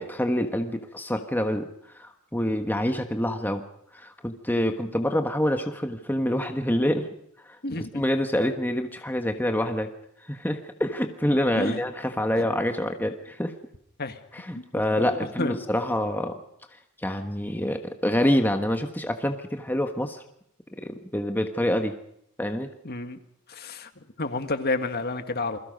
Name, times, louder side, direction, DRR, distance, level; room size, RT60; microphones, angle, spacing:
voice 1, 0.0-3.6 3.9-7.1 7.4-9.9 10.2-13.5 14.3-16.4 16.7-20.2 20.8-21.9 22.4-22.7, left 1 dB, 10° left, 5 dB, 1.3 m, -27 dB
voice 2, 7.6-8.0 11.6-11.8 12.4-12.5 14.0-14.2 14.5-14.6 15.0-15.1 15.4-15.6 22.9-23.2 23.5-23.9 24.2-25.6, left 2 dB, 45° left, 8 dB, 1.8 m, -30 dB
28.5 x 22.0 x 5.3 m, 0.74 s
head